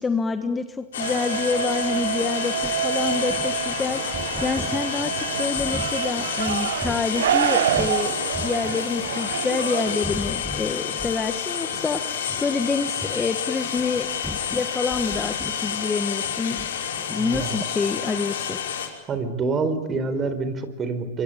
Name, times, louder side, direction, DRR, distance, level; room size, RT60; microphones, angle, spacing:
voice 1, 0.0-14.2 14.5-15.3 15.6-16.6 17.1-18.6, left 4 dB, 15° left, 8 dB, 1.4 m, -27 dB
sound 1, 0.9-18.9, left 8 dB, 80° left, 5.8 m, -29 dB
sound 2, 1.0-10.0, right 11 dB, 70° right, 0.9 m, -28 dB
sound 3, 2.1-8.0 8.3-9.5 9.9-11.4 11.7-11.9 12.2-12.4 13.0-13.2 13.7-17.1 17.3-17.5, equal, 5° right, 1.5 m, -38 dB
voice 2, 17.2-17.6 19.1-21.2, right 4 dB, 25° right, 10 dB, 4.5 m, -27 dB
26.0 x 24.5 x 8.8 m, 1.2 s
hypercardioid pair, 120°, 0 cm